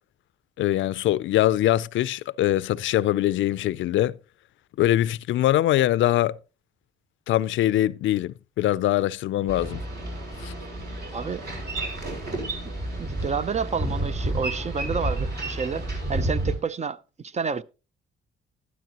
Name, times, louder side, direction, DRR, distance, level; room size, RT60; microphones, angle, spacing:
voice 1, 0.6-4.1 4.8-6.3 7.3-9.8 10.4-10.5, left 13 dB, 75° left, 0.5 m, -23 dB
Boat Water vehicle, 9.5-16.6, right 1 dB, 55° right, 6.1 m, -30 dB
voice 2, 11.1-11.4 13.0-17.6, right 6 dB, 35° right, 0.6 m, -30 dB
13.0 x 12.0 x 2.9 m
cardioid pair, 90°, 20 cm